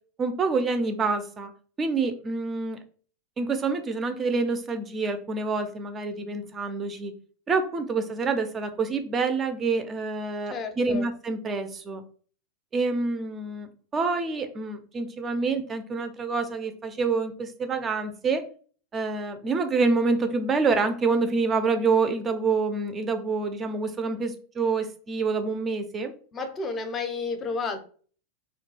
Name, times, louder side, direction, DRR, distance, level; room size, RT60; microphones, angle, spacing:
voice 1, 0.2-1.5 1.8-2.8 3.4-7.1 7.5-12.0 12.7-18.4 18.9-26.1, right 4 dB, 25° right, 8 dB, 0.4 m, -27 dB
voice 2, 10.5-11.1 26.3-27.8, left 4 dB, 30° left, 6 dB, 0.5 m, -31 dB
2.3 x 2.1 x 3.1 m, 0.43 s
figure-of-eight pair, 90°, 0 cm